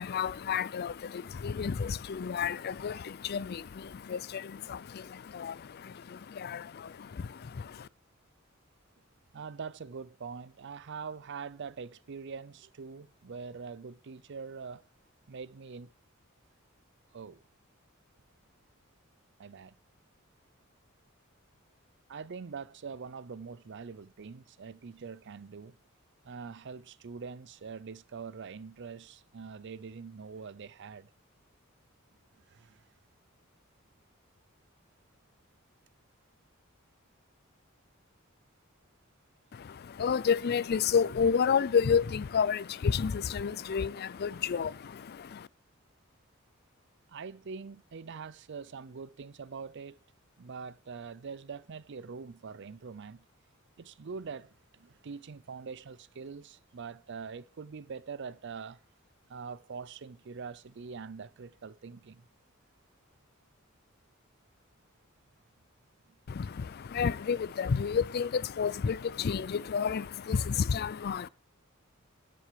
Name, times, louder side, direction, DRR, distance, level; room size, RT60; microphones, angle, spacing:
voice 1, 0.0-7.9 39.5-45.5 66.3-71.3, left 6 dB, 50° left, 0.4 m, -31 dB
voice 2, 9.3-14.8 15.3-15.9 17.1-17.4 19.4-19.8 22.1-25.8 26.2-31.1 32.5-32.8 47.1-50.0 50.4-53.2 53.8-58.8 59.3-62.3 66.1-66.2, right 5 dB, 60° right, 0.5 m, -43 dB
14.0 x 7.7 x 5.0 m
head